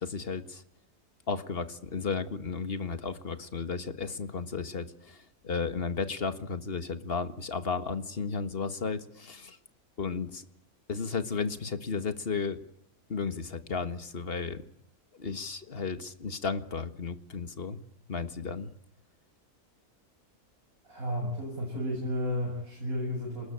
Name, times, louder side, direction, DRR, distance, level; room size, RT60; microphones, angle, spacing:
voice 1, 0.0-0.6 1.3-9.6 10.0-10.5 10.9-12.6 13.1-14.6 15.2-17.8 18.1-18.7, left 5 dB, 40° left, 10 dB, 1.9 m, -34 dB
voice 2, 20.8-23.5, left 1 dB, 65° right, -1 dB, 8.1 m, -32 dB
27.5 x 21.0 x 9.0 m, 0.72 s
omnidirectional pair, 1.6 m